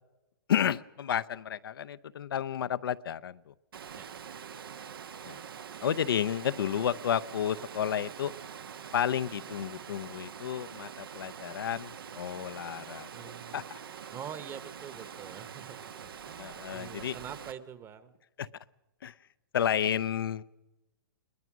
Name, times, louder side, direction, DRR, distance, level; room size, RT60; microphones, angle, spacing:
voice 1, 0.5-3.5 5.2-5.4 5.8-8.3 8.9-13.1 13.5-13.8 16.4-17.2 18.4-18.5 19.0-19.1 19.5-20.4, left 9 dB, 80° left, 14 dB, 0.7 m, -31 dB
Water, 3.7-17.5, right 7 dB, 85° right, 1.1 m, -45 dB
voice 2, 12.9-13.6 14.1-18.1, right 8 dB, 20° right, 13 dB, 1.1 m, -45 dB
21.5 x 20.0 x 6.1 m, 1.0 s
hypercardioid pair, 140°, 12 cm